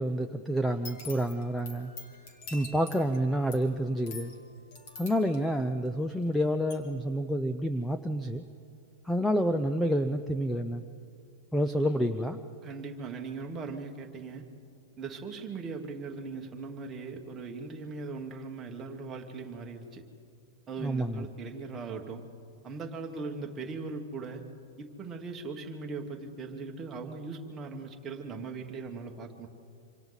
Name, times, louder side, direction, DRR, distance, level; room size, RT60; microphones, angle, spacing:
voice 1, 0.0-1.9 2.5-4.3 5.0-8.4 9.0-10.8 11.5-12.4 20.8-21.3, equal, ahead, 8 dB, 0.5 m, -28 dB
sound 1, 0.7-6.3 6.7-6.8, left 3 dB, 40° left, 2.7 m, -46 dB
voice 2, 12.6-14.5 15.0-20.0 20.7-22.3 22.6-24.4 24.8-29.5, right 4 dB, 15° right, 2 dB, 1.5 m, -39 dB
26.0 x 26.0 x 4.1 m, 2.4 s
supercardioid pair, 170°, 0 cm